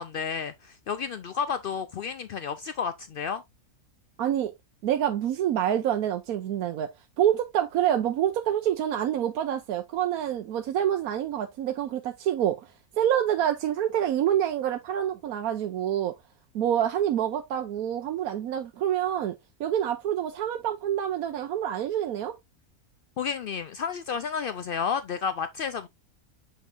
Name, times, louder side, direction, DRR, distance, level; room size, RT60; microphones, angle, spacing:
voice 1, 0.0-3.4 23.2-25.9, left 6 dB, 80° left, 0.4 m, -31 dB
voice 2, 4.2-4.5 4.8-6.9 7.2-16.1 16.5-19.3 19.6-22.4, right 10 dB, 80° right, 1.2 m, -27 dB
7.2 x 5.5 x 2.5 m
omnidirectional pair, 1.5 m